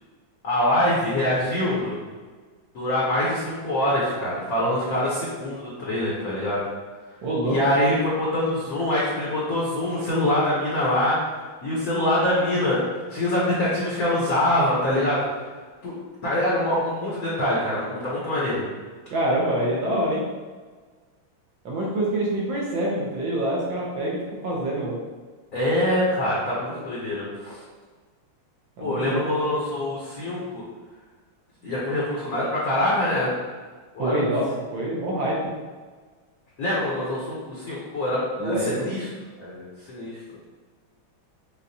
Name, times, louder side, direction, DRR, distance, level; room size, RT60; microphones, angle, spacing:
voice 1, 0.4-2.0 2.7-6.6 7.4-11.2 11.6-12.8 13.1-15.3 15.8-15.9 16.2-18.6 25.5-27.6 28.8-30.6 31.6-33.3 33.9-34.3 36.6-39.1 39.4-39.6 39.9-40.2, left 1 dB, 55° left, -6 dB, 1.1 m, -24 dB
voice 2, 7.2-7.6 19.1-20.2 21.6-25.0 28.8-29.4 34.0-35.4 38.4-38.8, right 1 dB, 70° right, -5 dB, 1.4 m, -26 dB
6.6 x 2.3 x 2.7 m, 1.4 s
omnidirectional pair, 2.3 m